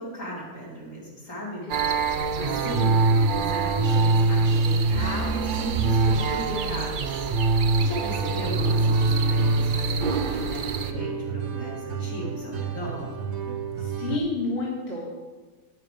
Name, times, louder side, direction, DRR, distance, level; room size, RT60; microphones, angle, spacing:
voice 1, 0.0-1.6 2.1-3.0 3.3-7.3 7.8-13.1, equal, 55° left, -5 dB, 3.3 m, -36 dB
sound 1, 1.7-10.9, right 3 dB, 85° right, 0.4 m, -23 dB
sound 2, 8.1-14.2, right 5 dB, 65° right, 1.3 m, -33 dB
voice 2, 13.8-15.2, left 3 dB, 35° left, -6 dB, 2.0 m, -30 dB
9.6 x 9.0 x 5.1 m, 1.3 s
omnidirectional pair, 1.7 m